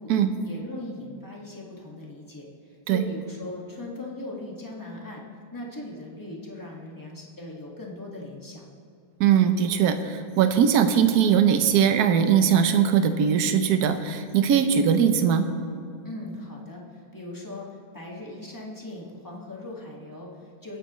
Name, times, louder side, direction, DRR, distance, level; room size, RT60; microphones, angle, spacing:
voice 1, 0.4-5.2 5.5-8.6 16.0-17.7 17.9-20.8, left 1 dB, 10° left, -3 dB, 1.7 m, -39 dB
voice 2, 9.2-15.5, right 8 dB, 60° right, 8 dB, 1.1 m, -20 dB
23.0 x 9.2 x 3.1 m, 2.5 s
omnidirectional pair, 2.2 m